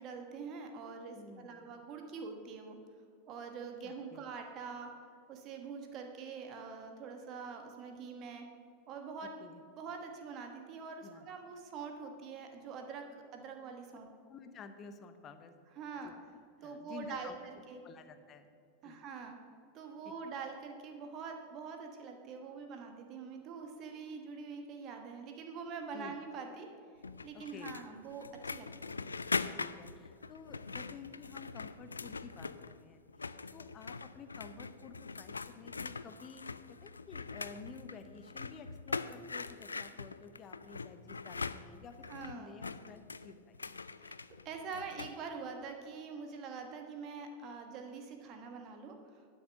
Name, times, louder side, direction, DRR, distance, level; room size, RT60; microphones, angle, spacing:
voice 1, 0.0-2.8 3.3-4.9 5.3-8.4 8.9-9.3 9.8-13.0 13.3-14.1 15.8-16.1 16.6-17.8 18.8-19.4 19.7-26.7 27.2-29.0 42.1-42.5 44.0-44.2 44.4-49.2, right 5 dB, 35° right, 4 dB, 1.3 m, -45 dB
voice 2, 1.1-1.7 3.8-4.3 9.4-9.6 11.0-11.3 14.3-15.6 16.0-16.2 16.6-17.4 17.8-18.5 18.8-19.0 20.0-20.1 23.8-23.9 25.9-26.1 27.3-27.8 29.5-33.0 33.5-36.4 36.8-43.6, left 5 dB, 30° left, 9 dB, 0.9 m, -52 dB
sound 1, 27.0-32.8 33.1-45.2, left 4 dB, 75° left, 0.3 m, -42 dB
11.5 x 6.4 x 6.4 m, 2.3 s
figure-of-eight pair, 90°, 0 cm